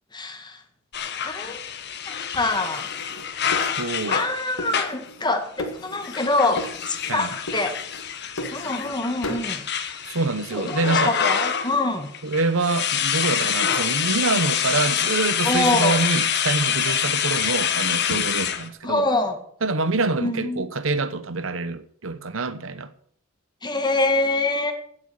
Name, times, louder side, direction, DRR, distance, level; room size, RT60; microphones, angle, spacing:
voice 1, 0.1-0.6 1.2-1.6 2.1-2.9 4.1-7.8 8.5-9.6 10.5-12.1 15.4-16.0 18.8-19.4 20.2-20.7 23.6-24.7, left 2 dB, 20° left, 1.8 m, -25 dB
sound 1, 0.9-5.1 6.0-11.8 12.1-18.7, left 8 dB, 55° left, 1.4 m, -26 dB
sound 2, 2.3-4.3 4.6-5.3 5.6-6.3 6.6-7.2 7.5-8.9 9.2-9.5, left 1 dB, 90° left, 2.0 m, -36 dB
voice 2, 3.6-4.2 7.1-7.3 10.0-11.1 12.2-19.1 19.6-22.9, right 3 dB, 70° right, 1.0 m, -26 dB
16.0 x 8.5 x 6.4 m
head